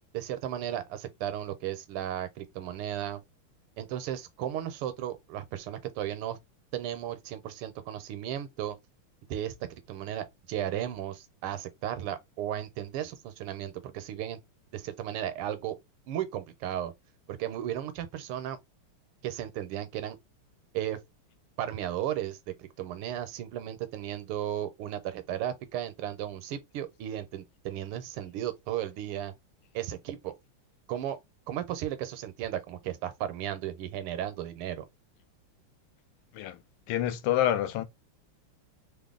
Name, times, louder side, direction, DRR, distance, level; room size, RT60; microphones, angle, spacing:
voice 1, 0.1-3.2 3.8-6.4 6.7-8.8 9.3-14.4 14.7-15.8 16.1-16.9 17.3-18.6 19.2-20.2 20.7-21.0 21.6-29.3 29.7-30.3 30.9-31.2 31.5-34.8, right 11 dB, 85° right, 1.6 m, -35 dB
voice 2, 36.9-37.8, left 11 dB, 85° left, 1.5 m, -27 dB
3.7 x 2.0 x 3.6 m
omnidirectional pair, 2.4 m